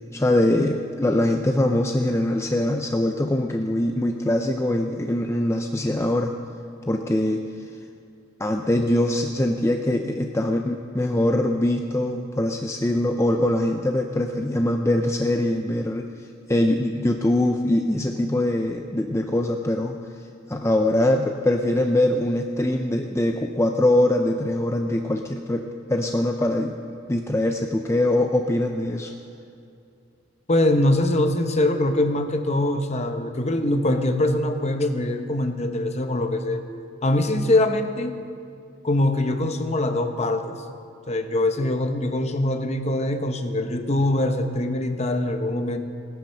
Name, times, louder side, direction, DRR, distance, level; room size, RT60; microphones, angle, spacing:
voice 1, 0.0-6.4 6.9-7.7 8.4-16.1 16.5-20.0 20.5-29.1, left 1 dB, 15° left, 4 dB, 0.5 m, -23 dB
voice 2, 30.5-36.6 37.0-38.1 38.8-40.6 41.1-45.8, left 1 dB, 35° left, 7 dB, 0.9 m, -23 dB
17.5 x 10.0 x 6.5 m, 2.5 s
head